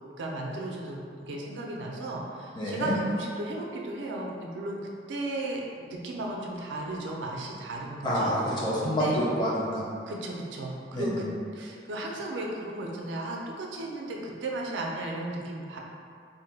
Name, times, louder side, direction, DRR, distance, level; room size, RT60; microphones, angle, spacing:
voice 1, 0.2-8.3 8.8-9.2 10.1-11.3 11.5-15.8, right 2 dB, 80° right, -1 dB, 0.4 m, -35 dB
voice 2, 2.6-3.0 8.0-9.8 10.9-11.2, equal, 25° left, -6 dB, 0.5 m, -27 dB
2.6 x 2.1 x 3.9 m, 2.3 s
head